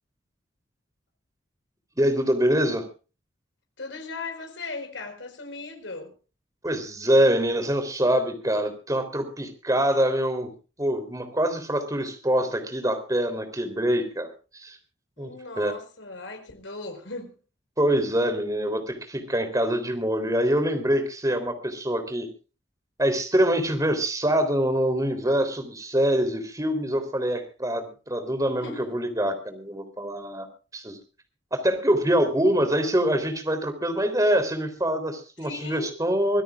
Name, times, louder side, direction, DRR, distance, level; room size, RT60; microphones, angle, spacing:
voice 1, 2.0-2.8 6.6-10.5 10.8-14.8 15.2-15.3 15.6-15.7 17.8-22.3 23.0-30.5 30.7-31.0 31.5-36.4, right 1 dB, 20° right, 3.5 m, -24 dB
voice 2, 3.8-6.1 15.2-17.3 28.5-28.9 35.4-35.9, left 3 dB, 80° left, 4.8 m, -37 dB
25.5 x 17.0 x 2.5 m
head